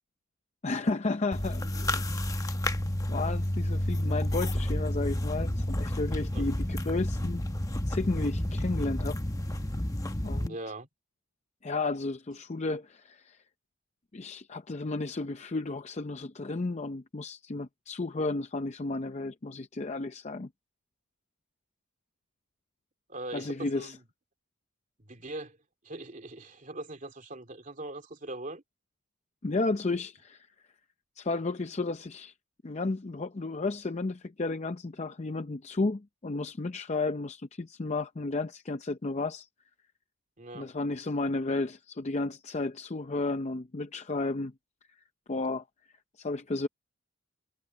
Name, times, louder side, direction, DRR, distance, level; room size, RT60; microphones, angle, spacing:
voice 1, 0.6-2.2 3.1-7.4 7.9-9.2 10.2-10.6 11.6-13.4 14.1-20.5 23.3-24.0 29.4-30.5 31.2-32.3 32.6-39.5 40.5-44.5 45.3-45.6 46.2-46.7, left 3 dB, 35° left, 0.6 m, -33 dB
sound 1, 1.3-10.5, left 1 dB, 15° left, 0.9 m, -30 dB
voice 2, 10.4-10.9 23.1-24.0 25.0-25.6 25.8-28.6 40.4-40.7, right 2 dB, 40° right, 2.7 m, -41 dB
head